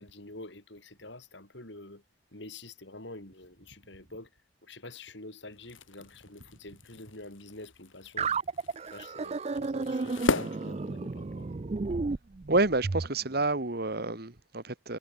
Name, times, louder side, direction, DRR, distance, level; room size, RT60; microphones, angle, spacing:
voice 1, 0.0-2.0 2.3-4.3 4.6-8.3 8.9-11.7, left 2 dB, 65° left, 4.9 m, -47 dB
sound 1, 5.5-11.5, left 3 dB, 80° left, 2.1 m, -37 dB
sound 2, 8.2-13.1, right 4 dB, 35° right, 0.4 m, -33 dB
voice 2, 12.5-15.0, right 2 dB, 50° right, 1.8 m, -28 dB
head